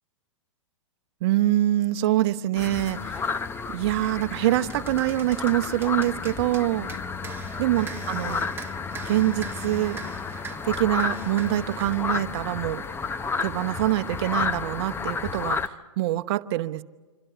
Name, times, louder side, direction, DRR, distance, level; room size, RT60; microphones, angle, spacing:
voice 1, 1.2-3.3 3.7-6.9 7.6-8.5 9.0-10.0 10.6-12.8 13.4-16.8, right 15 dB, 55° right, 11 dB, 0.9 m, -25 dB
sound 1, 2.6-15.7, left 5 dB, 15° left, 0.9 m, -32 dB
sound 2, 3.1-3.3 3.8-12.0, right 5 dB, 15° right, 1.8 m, -42 dB
26.5 x 26.0 x 6.8 m, 1.3 s
hypercardioid pair, 115°, 16 cm